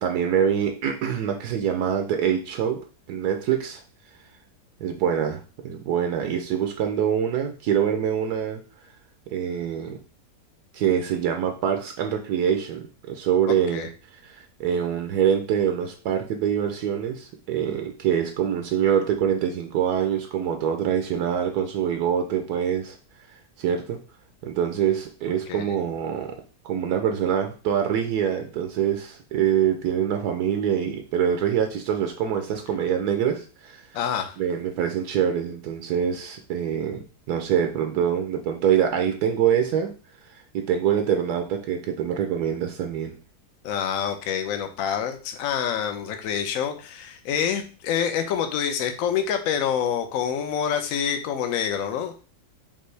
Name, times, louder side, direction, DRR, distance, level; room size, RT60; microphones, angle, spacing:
voice 1, 0.0-3.8 4.8-8.6 9.3-10.0 10.7-13.9 14.2-23.0 23.3-24.0 24.4-26.4 26.6-33.8 34.4-39.9 40.5-43.1, right 8 dB, 75° right, 5 dB, 1.1 m, -25 dB
voice 2, 13.5-13.9 25.5-25.7 33.9-34.4 43.6-52.1, left 8 dB, 65° left, 6 dB, 1.0 m, -27 dB
5.3 x 2.6 x 3.2 m, 0.36 s
omnidirectional pair, 1.7 m